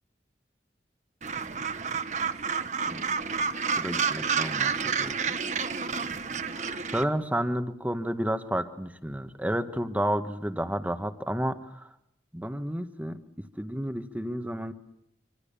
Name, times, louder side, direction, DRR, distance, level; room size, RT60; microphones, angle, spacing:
Gull seagull, 1.2-7.0, right 6 dB, 40° right, 1.3 m, -30 dB
voice 1, 3.8-5.1 6.6-11.9 12.3-13.2 13.6-14.7, right 1 dB, 10° right, 9 dB, 1.4 m, -31 dB
26.0 x 25.5 x 7.0 m, 0.78 s
head